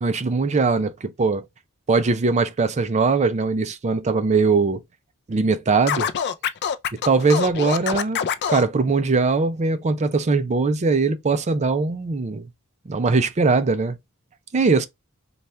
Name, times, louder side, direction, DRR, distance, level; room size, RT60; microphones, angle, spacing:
voice 1, 0.0-1.4 1.9-4.8 5.3-6.1 6.9-8.2 8.5-12.5 12.9-14.0 14.5-14.9, right 4 dB, 30° right, 0.4 m, -21 dB
Scratching (performance technique), 5.9-8.7, left 8 dB, 50° left, 0.4 m, -25 dB
4.1 x 2.3 x 3.2 m
head